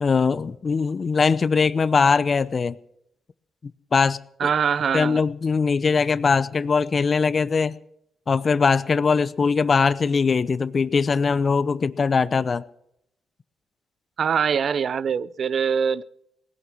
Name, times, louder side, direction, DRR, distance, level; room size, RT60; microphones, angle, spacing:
voice 1, 0.0-2.7 3.6-4.5 4.9-7.8 8.3-12.6, left 5 dB, 45° left, 0.8 m, -21 dB
voice 2, 4.4-5.2 14.2-16.0, right 7 dB, 60° right, 0.5 m, -23 dB
19.5 x 11.0 x 6.1 m
supercardioid pair, 55°, 0 cm